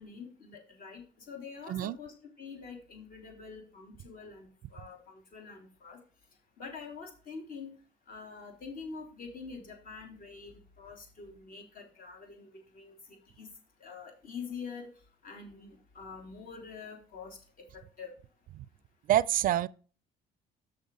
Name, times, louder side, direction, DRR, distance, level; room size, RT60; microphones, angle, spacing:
voice 1, 0.0-6.0 6.6-7.7 8.1-12.5 12.7-13.5 13.8-14.9 15.2-17.4 17.7-18.1, left 5 dB, 55° left, 3.5 m, -46 dB
voice 2, 19.1-19.7, right 12 dB, 55° right, 0.4 m, -26 dB
6.7 x 6.5 x 5.3 m
cardioid pair, 110°, 17 cm